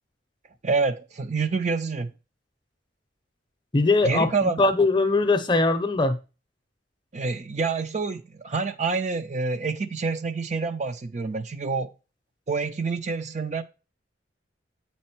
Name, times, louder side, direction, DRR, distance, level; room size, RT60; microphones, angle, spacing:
voice 1, 0.6-2.1 4.0-4.6 7.1-11.9 12.5-13.6, right 4 dB, 40° right, 0.5 m, -27 dB
voice 2, 3.7-6.2, left 3 dB, 25° left, 0.7 m, -21 dB
8.5 x 4.3 x 4.3 m
head